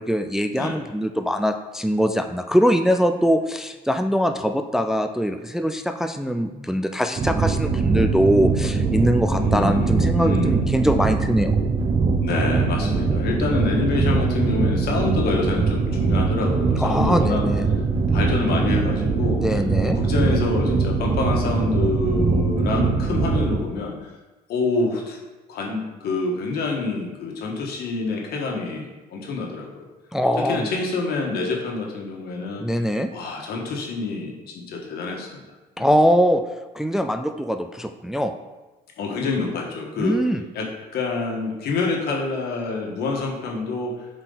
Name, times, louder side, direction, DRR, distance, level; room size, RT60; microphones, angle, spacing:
voice 1, 0.0-11.5 16.8-17.6 19.4-20.0 30.1-30.7 32.6-33.1 35.8-36.4 36.7-38.3 40.0-40.4, equal, 5° right, 7 dB, 0.3 m, -22 dB
sound 1, 7.2-23.6, right 4 dB, 35° right, 1.0 m, -22 dB
voice 2, 9.3-10.6 12.2-17.4 17.8-17.9 18.1-24.1 24.5-25.2 25.5-29.9 30.4-32.7 33.1-35.4 35.8-35.9 39.0-40.2 40.5-44.1, left 3 dB, 70° left, 0 dB, 1.5 m, -27 dB
7.8 x 4.4 x 3.9 m, 1.1 s
cardioid pair, 110°, 17 cm